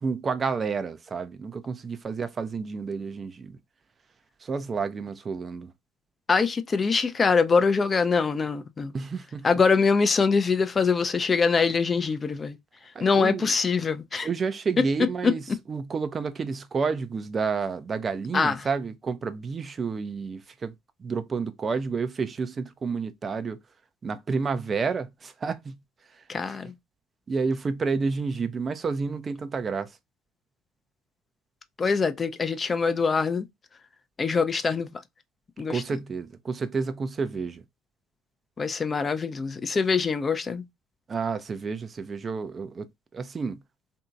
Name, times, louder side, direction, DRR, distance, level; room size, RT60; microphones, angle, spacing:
voice 1, 0.0-3.6 4.4-5.7 8.9-9.5 12.9-13.5 14.2-15.4 15.7-20.7 21.0-23.6 24.0-25.8 26.1-26.6 27.3-30.0 35.7-37.6 41.1-43.6, right 5 dB, 35° right, 0.4 m, -30 dB
voice 2, 6.3-8.9 9.4-12.6 13.0-14.3 15.2-15.6 18.3-18.6 26.3-26.7 31.8-33.5 34.2-35.0 35.6-35.8 38.6-40.6, left 5 dB, 30° left, 0.4 m, -24 dB
2.8 x 2.6 x 2.3 m
hypercardioid pair, 65°, 0 cm